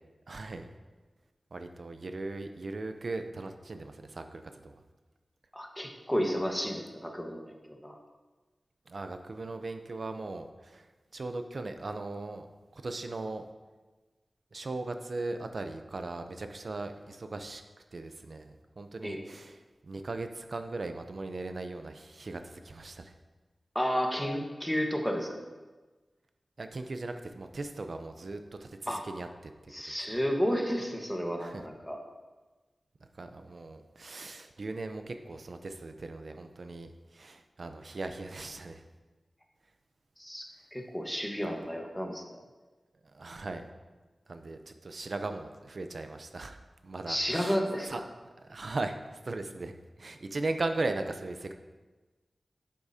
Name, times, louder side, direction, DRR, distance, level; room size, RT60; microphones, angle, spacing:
voice 1, 0.3-0.7 1.5-4.8 8.9-10.9 11.1-12.5 12.7-13.4 14.5-17.6 17.9-23.1 26.6-29.5 29.9-30.0 31.4-31.6 33.1-38.8 43.1-43.7 44.3-46.6 46.8-47.6 47.9-48.0 48.4-49.7 50.0-51.5, right 2 dB, 60° right, 7 dB, 0.7 m, -38 dB
voice 2, 5.5-7.9 19.0-19.2 23.7-25.5 28.9-29.0 29.7-32.0 40.2-40.4 40.7-42.4 47.1-48.0, equal, 5° left, 1 dB, 1.4 m, -32 dB
11.0 x 8.5 x 2.8 m, 1.3 s
wide cardioid pair, 70°, 0 cm